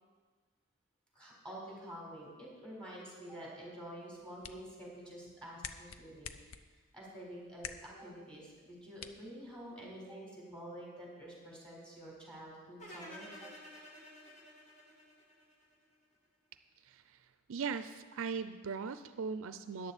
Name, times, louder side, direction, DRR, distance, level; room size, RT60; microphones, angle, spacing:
voice 1, 1.1-6.3 6.9-13.5, right 1 dB, 5° left, -5 dB, 4.4 m, -48 dB
sound 1, 4.0-10.0, left 7 dB, 70° left, 0.6 m, -51 dB
sound 2, 12.8-15.9, equal, 35° left, 2.1 m, -52 dB
voice 2, 16.8-17.2 17.5-19.9, right 5 dB, 65° right, 11 dB, 0.5 m, -39 dB
14.0 x 10.5 x 4.2 m, 1.4 s
head